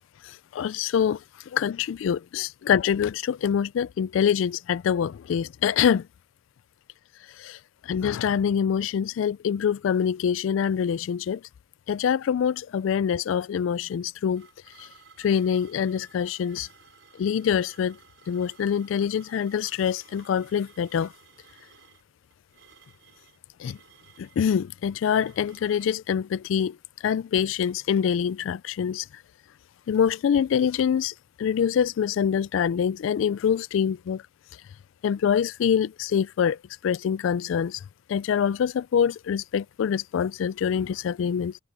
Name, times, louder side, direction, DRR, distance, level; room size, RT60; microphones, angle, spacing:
voice 1, 0.2-6.1 7.4-11.4 11.9-14.5 14.8-14.9 15.2-16.7 17.2-18.0 18.3-21.1 23.6-23.8 24.2-26.8 27.0-29.2 29.9-34.2 35.0-37.8 38.1-41.6, left 8 dB, 75° left, 0.3 m, -25 dB
sound 1, 13.9-26.0, right 6 dB, 65° right, 5.6 m, -56 dB
head